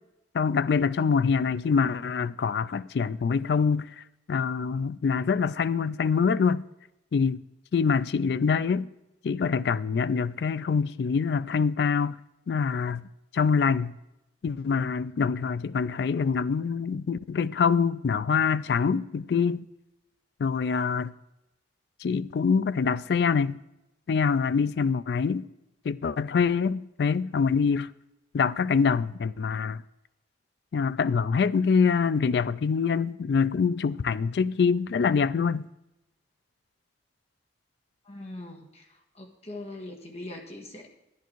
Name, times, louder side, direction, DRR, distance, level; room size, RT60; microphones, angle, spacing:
voice 1, 0.3-6.6 7.1-7.4 7.7-8.9 9.2-12.2 12.5-13.1 13.3-13.9 14.4-19.7 20.4-21.1 22.0-23.6 24.1-25.5 25.8-27.9 28.3-29.8 30.7-35.7, left 5 dB, 60° left, 0.3 m, -25 dB
voice 2, 38.1-38.8 39.1-40.9, left 2 dB, 35° left, 1.6 m, -41 dB
10.5 x 10.0 x 4.6 m
head